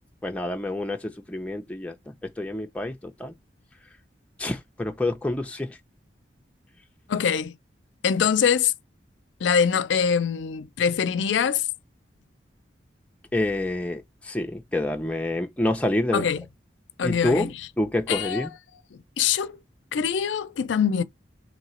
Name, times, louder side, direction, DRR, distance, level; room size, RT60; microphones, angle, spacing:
voice 1, 0.2-1.9 2.4-3.3 4.4-5.7 13.3-16.3 17.0-17.5 17.8-18.5, left 1 dB, 5° left, 0.4 m, -27 dB
voice 2, 7.1-7.5 8.0-8.7 9.4-11.7 16.1-16.4 17.0-17.5 18.1-18.5 18.9-19.5 19.9-21.0, left 7 dB, 85° left, 0.4 m, -23 dB
3.1 x 2.9 x 4.2 m
head